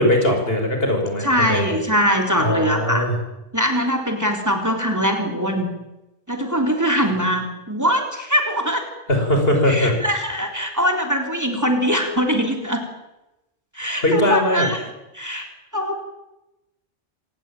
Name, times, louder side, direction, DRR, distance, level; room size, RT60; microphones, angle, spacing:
voice 1, 0.0-1.7 2.4-3.1 9.1-10.0 14.0-14.7, left 1 dB, 65° left, 3 dB, 6.3 m, -20 dB
voice 2, 1.2-3.1 3.5-5.7 6.3-8.8 9.7-12.8 13.7-14.8 15.1-15.5 15.7-16.0, equal, 15° right, 3 dB, 3.6 m, -22 dB
26.5 x 18.0 x 9.1 m, 0.96 s
omnidirectional pair, 1.1 m